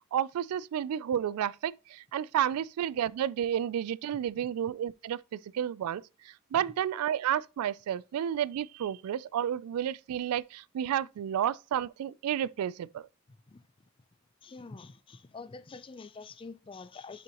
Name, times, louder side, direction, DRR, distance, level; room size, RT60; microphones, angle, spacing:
voice 1, 0.1-13.1, right 10 dB, 85° right, 0.3 m, -31 dB
voice 2, 14.4-17.2, left 4 dB, 25° left, 0.3 m, -46 dB
6.1 x 5.9 x 2.9 m
head